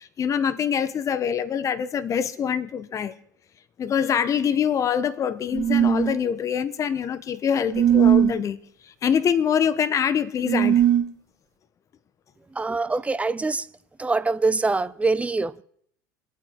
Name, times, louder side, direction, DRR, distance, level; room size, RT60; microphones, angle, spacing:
voice 1, 0.0-3.1 3.8-8.6 9.0-10.8, left 8 dB, 35° left, 0.9 m, -24 dB
sound 1, 5.5-6.2 7.7-8.3 10.5-11.0, right 10 dB, 35° right, 1.5 m, -19 dB
voice 2, 12.6-13.7 14.0-15.6, right 3 dB, 15° right, 0.6 m, -24 dB
27.5 x 9.3 x 3.7 m
hypercardioid pair, 80°, 10 cm